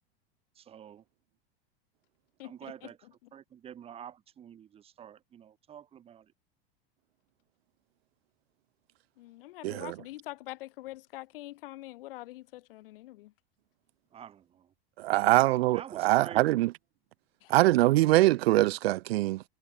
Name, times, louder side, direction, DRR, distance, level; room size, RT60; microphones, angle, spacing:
voice 1, 0.5-1.0 2.4-3.0 3.3-6.3 14.1-14.7 15.7-16.6, right 9 dB, 20° right, 4.6 m, -47 dB
voice 2, 2.4-3.1 9.2-13.3 15.2-15.4 17.4-17.6, left 17 dB, 65° left, 6.8 m, -45 dB
voice 3, 9.6-9.9 15.0-16.7 17.5-19.4, right 17 dB, 75° right, 0.8 m, -23 dB
supercardioid pair, 175°, 31 cm